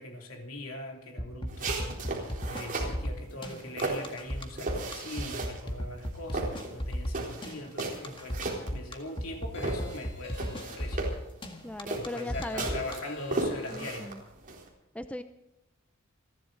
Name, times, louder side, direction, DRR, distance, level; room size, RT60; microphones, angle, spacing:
voice 1, 0.0-8.4 8.7-11.1 11.9-14.1, left 1 dB, 70° left, 2 dB, 3.0 m, -41 dB
sound 1, 1.2-12.9, equal, 25° left, 1.9 m, -35 dB
sound 2, 1.5-3.0 3.4-5.7 6.0-9.3 9.6-14.7, right 2 dB, 40° right, 4.0 m, -35 dB
sound 3, 9.5-11.3 12.3-14.1, left 3 dB, 55° left, 2.2 m, -49 dB
voice 2, 11.6-12.7 13.7-14.2 14.9-15.2, left 1 dB, 5° left, 9 dB, 0.6 m, -38 dB
29.0 x 12.0 x 4.1 m, 0.93 s
head